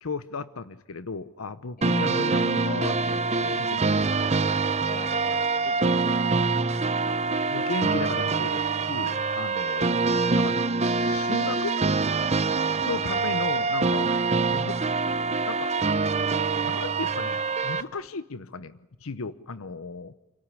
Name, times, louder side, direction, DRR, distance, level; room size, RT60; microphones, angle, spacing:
voice 1, 0.0-3.9 7.5-9.9 10.4-10.6 11.0-11.7 12.8-14.2 14.5-15.1 15.5-15.7 16.6-20.1, left 4 dB, 85° left, 14 dB, 0.8 m, -35 dB
sound 1, 1.8-17.8, right 4 dB, 30° right, 0.8 m, -25 dB
voice 2, 4.8-6.4 6.9-7.0 12.5-12.6, left 3 dB, 45° left, 10 dB, 1.9 m, -44 dB
28.5 x 18.0 x 9.8 m, 0.99 s
head